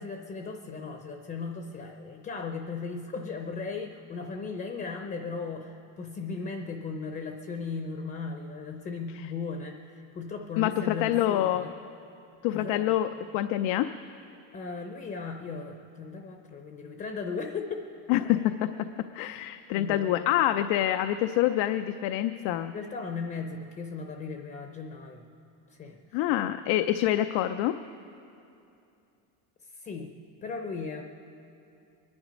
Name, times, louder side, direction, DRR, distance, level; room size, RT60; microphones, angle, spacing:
voice 1, 0.0-11.7 12.5-12.9 14.5-17.8 19.7-20.3 22.7-25.2 25.7-26.3 29.7-30.1 30.4-31.0, left 4 dB, 20° left, 5 dB, 0.6 m, -37 dB
voice 2, 10.6-11.7 12.4-13.9 18.1-18.9 19.1-22.7 26.1-27.8, left 13 dB, 90° left, 10 dB, 0.6 m, -26 dB
23.5 x 10.5 x 5.1 m, 2.7 s
cardioid pair, 170°, 41 cm